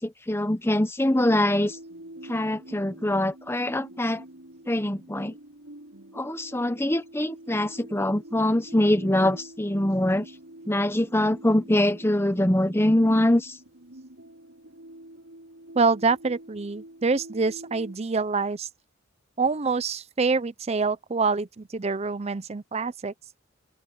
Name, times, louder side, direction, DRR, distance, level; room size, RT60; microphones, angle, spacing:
voice 1, 0.0-1.8 2.3-4.2 4.7-5.3 6.1-10.3 10.7-13.6, left 1 dB, 10° left, 1.1 m, -23 dB
sound 1, 1.0-18.0, right 1 dB, 85° right, 5.9 m, -46 dB
voice 2, 15.8-18.7 19.4-23.1, right 4 dB, 30° right, 0.6 m, -26 dB
head